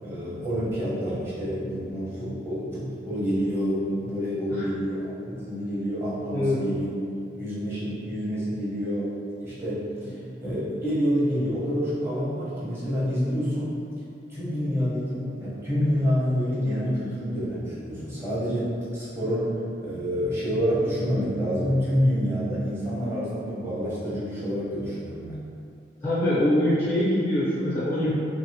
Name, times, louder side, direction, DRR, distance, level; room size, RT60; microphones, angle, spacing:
voice 1, 0.0-6.9 7.3-9.1 9.4-10.1 10.4-13.8 14.3-19.5 19.8-25.4 28.0-28.1, equal, 15° right, -11 dB, 0.9 m, -27 dB
voice 2, 26.0-28.1, left 1 dB, 15° left, -11 dB, 0.5 m, -24 dB
2.7 x 2.5 x 2.8 m, 2.4 s
head